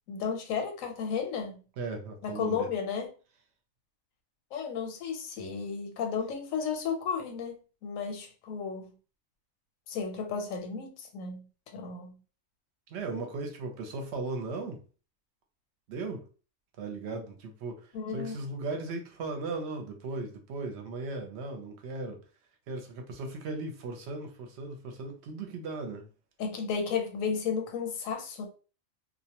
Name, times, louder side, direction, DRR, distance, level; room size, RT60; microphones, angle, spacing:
voice 1, 0.1-1.6 2.2-3.1 4.5-7.5 7.8-8.9 9.9-11.5 11.7-12.2 17.9-18.4 26.4-28.5, left 6 dB, 80° left, 1.0 m, -33 dB
voice 2, 1.8-2.7 12.9-14.8 15.9-16.3 16.8-22.2 22.7-26.1, right 3 dB, 65° right, 0.8 m, -37 dB
2.3 x 2.1 x 2.8 m
omnidirectional pair, 1.4 m